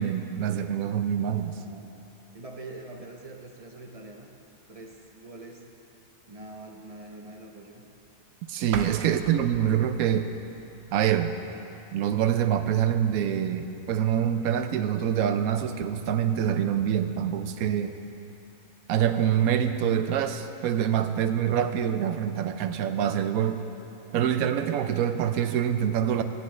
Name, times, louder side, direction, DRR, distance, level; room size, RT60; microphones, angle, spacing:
voice 1, 0.0-1.6 8.5-10.4 10.9-11.3 11.9-17.9 18.9-23.6 24.1-26.2, right 9 dB, 90° right, 9 dB, 1.1 m, -25 dB
voice 2, 1.5-1.9 2.3-4.3 4.7-5.7 6.3-7.8 24.0-24.2, right 2 dB, 35° right, 2 dB, 0.6 m, -44 dB
sound 1, 8.7-11.5, right 6 dB, 65° right, 1.0 m, -41 dB
16.0 x 9.8 x 3.2 m, 3.0 s
omnidirectional pair, 1.5 m